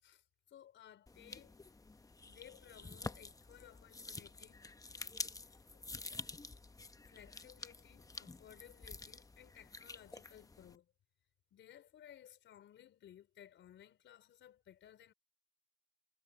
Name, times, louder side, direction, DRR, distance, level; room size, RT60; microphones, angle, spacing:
voice 1, 0.0-1.6 2.2-4.6 5.7-6.1 7.1-10.9 11.5-15.1, left 10 dB, 70° left, 4.6 m, -59 dB
sound 1, 1.1-10.8, left 3 dB, 15° left, 0.9 m, -49 dB
cardioid pair, 90°, 20 cm